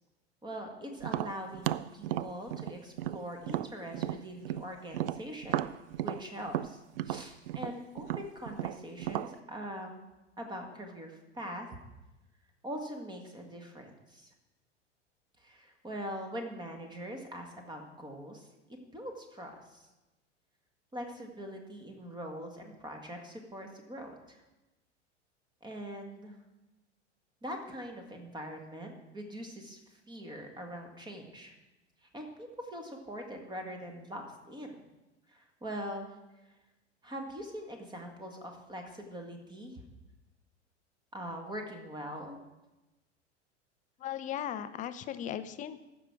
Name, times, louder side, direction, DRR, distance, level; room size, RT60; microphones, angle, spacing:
voice 1, 0.4-5.7 6.0-6.8 7.0-10.0 10.4-11.7 12.6-14.3 15.4-18.5 18.9-19.9 20.9-24.4 25.6-26.3 27.4-29.8 30.1-31.5 32.1-34.7 35.3-36.1 37.0-39.8 41.1-42.4, equal, 10° right, 4 dB, 1.7 m, -42 dB
Tap, 1.0-4.7 4.9-9.3, right 13 dB, 50° right, 0.4 m, -34 dB
voice 2, 44.0-45.9, left 10 dB, 20° left, 12 dB, 0.5 m, -37 dB
14.5 x 6.2 x 4.8 m, 1.0 s
figure-of-eight pair, 85°, 36 cm